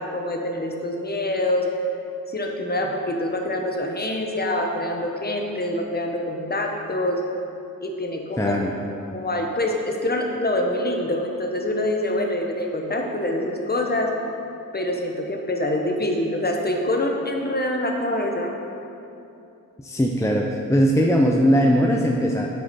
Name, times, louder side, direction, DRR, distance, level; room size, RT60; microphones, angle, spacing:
voice 1, 0.0-1.7 2.3-7.2 7.8-8.6 9.1-14.1 14.7-18.5, left 1 dB, 30° left, 2 dB, 1.0 m, -25 dB
voice 2, 8.4-8.7 19.8-22.5, equal, 10° left, 0 dB, 0.5 m, -20 dB
7.7 x 5.1 x 4.3 m, 2.7 s
cardioid pair, 55°, 34 cm